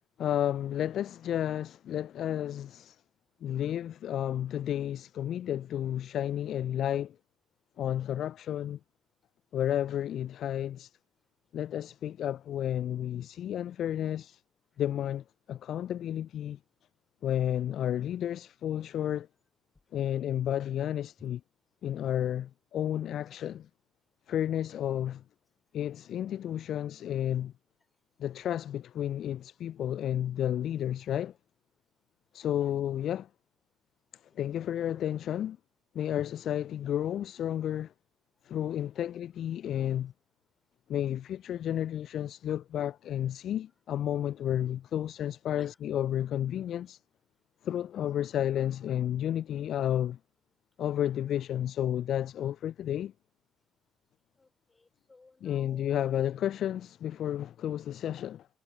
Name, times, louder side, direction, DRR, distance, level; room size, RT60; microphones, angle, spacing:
voice 1, 0.2-3.0 3.4-7.2 7.8-8.8 9.5-10.9 11.5-14.4 14.8-16.6 17.2-19.3 19.9-21.4 21.8-23.7 24.3-25.2 25.7-27.5 28.2-31.3 32.3-33.3 34.4-35.6 35.9-37.9 38.4-40.1 40.9-47.0 47.6-50.2 50.8-53.1 55.4-58.5, left 10 dB, 55° left, 0.4 m, -32 dB
voice 2, 23.2-23.6 26.7-26.8 32.5-32.8 34.3-34.4 34.9-35.0 36.3-36.4 38.7-39.1 45.6-45.8 54.4-56.3 57.9-58.0, left 3 dB, 25° left, 4.6 m, -60 dB
figure-of-eight pair, 50°, 0 cm